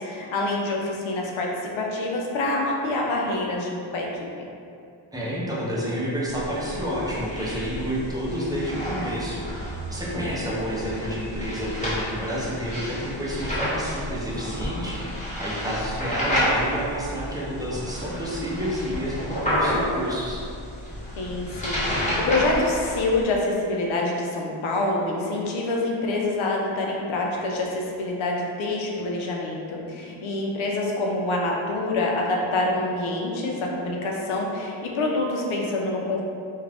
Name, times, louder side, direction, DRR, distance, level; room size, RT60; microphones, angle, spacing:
voice 1, 0.0-1.5 1.8-4.1 10.1-10.4 21.2-36.2, left 2 dB, 70° left, -2 dB, 0.7 m, -26 dB
voice 2, 5.1-20.5, equal, 10° right, -7 dB, 0.6 m, -30 dB
sound 1, 6.3-23.2, equal, 15° left, 1.0 m, -30 dB
2.5 x 2.4 x 3.3 m, 2.6 s
cardioid pair, 100°, 49 cm